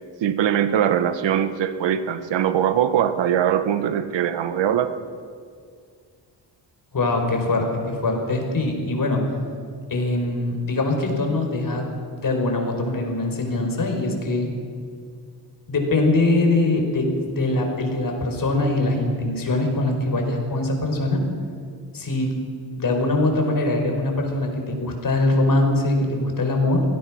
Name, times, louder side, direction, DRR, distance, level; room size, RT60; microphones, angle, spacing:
voice 1, 0.2-4.9, right 9 dB, 80° right, 11 dB, 1.3 m, -21 dB
voice 2, 6.9-9.2 9.9-11.9 12.2-14.5 15.7-21.2 21.9-22.4 22.8-26.8, left 2 dB, 50° left, 3 dB, 5.1 m, -22 dB
24.0 x 17.0 x 6.3 m, 2.1 s
cardioid pair, 85°, 44 cm